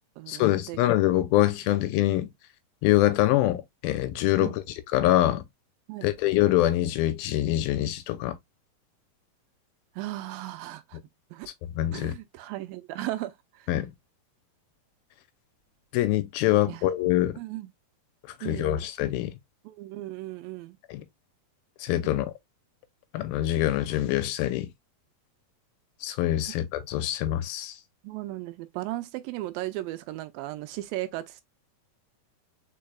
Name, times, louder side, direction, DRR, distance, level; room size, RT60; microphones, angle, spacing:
voice 1, 0.3-2.3 2.8-5.5 6.0-8.4 11.6-12.2 13.7-13.9 15.9-17.4 18.4-19.4 20.9-21.1 21.8-22.3 23.1-24.7 26.0-27.8, left 14 dB, 90° left, 2.5 m, -25 dB
voice 2, 10.0-11.0 11.3-11.5 11.9-13.7 16.7-16.8 17.4-17.7 18.4-18.9 19.7-20.8 28.0-31.4, right 16 dB, 80° right, 2.3 m, -36 dB
5.0 x 4.7 x 2.3 m
omnidirectional pair, 4.2 m